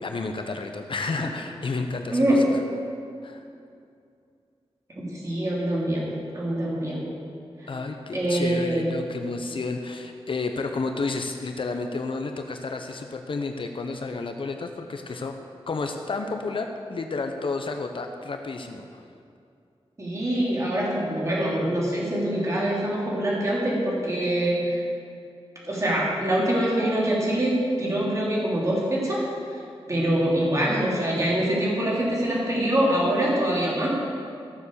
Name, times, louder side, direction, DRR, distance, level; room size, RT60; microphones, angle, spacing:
voice 1, 0.0-2.3 3.2-3.4 7.7-15.3 15.7-19.0, left 3 dB, 55° left, 5 dB, 0.8 m, -31 dB
voice 2, 4.9-7.1 8.1-8.9 20.0-24.8 25.6-29.3 29.9-34.0, right 1 dB, 30° right, -5 dB, 3.2 m, -24 dB
15.0 x 7.0 x 6.8 m, 2.4 s
wide cardioid pair, 140°, 10 cm